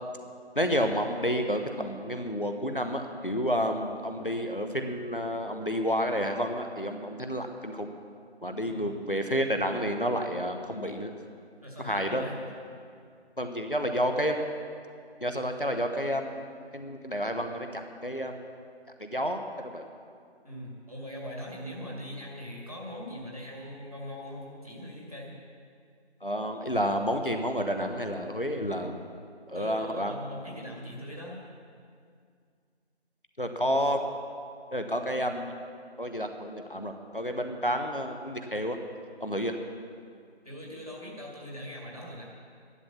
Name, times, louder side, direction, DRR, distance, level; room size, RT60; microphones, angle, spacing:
voice 1, 0.6-7.9 8.4-11.1 11.8-12.2 13.4-14.5 15.2-18.4 19.0-19.8 26.2-29.0 29.5-30.1 33.4-34.0 34.7-35.5 36.0-38.8 39.2-39.5, equal, 50° left, 5 dB, 1.0 m, -30 dB
voice 2, 8.6-8.9 11.6-12.4 20.4-25.3 29.5-31.5 40.4-42.3, equal, 35° right, -3 dB, 2.2 m, -41 dB
12.0 x 11.0 x 7.0 m, 2.2 s
figure-of-eight pair, 180°, 34 cm